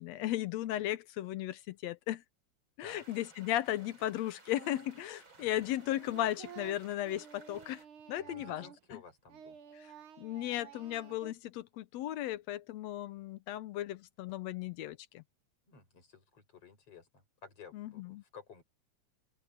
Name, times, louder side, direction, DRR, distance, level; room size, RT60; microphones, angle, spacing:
voice 1, 0.0-2.2 2.8-7.8 8.1-9.0 10.2-15.2 17.7-18.2, left 13 dB, 70° left, 1.9 m, -36 dB
sound 1, 2.9-7.8, right 3 dB, 40° right, 4.9 m, -58 dB
Singing, 4.5-5.1 5.3-9.0 9.3-11.3, right 8 dB, 60° right, 1.7 m, -52 dB
voice 2, 8.2-9.6 15.7-18.6, left 5 dB, 50° left, 7.8 m, -54 dB
open air
omnidirectional pair, 3.3 m